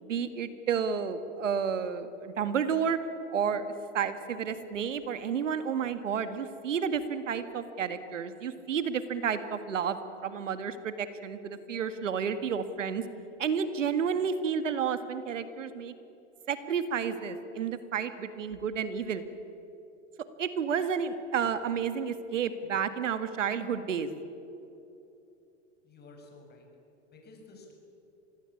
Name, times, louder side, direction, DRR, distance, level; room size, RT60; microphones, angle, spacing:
voice 1, 0.0-3.0 3.3-13.0 13.4-15.9 16.5-19.2 20.4-24.1, right 7 dB, 85° right, 11 dB, 1.9 m, -31 dB
voice 2, 25.8-26.7 27.1-27.7, left 3 dB, 25° left, 2 dB, 7.4 m, -52 dB
26.0 x 20.5 x 8.6 m, 2.8 s
hypercardioid pair, 110°, 37 cm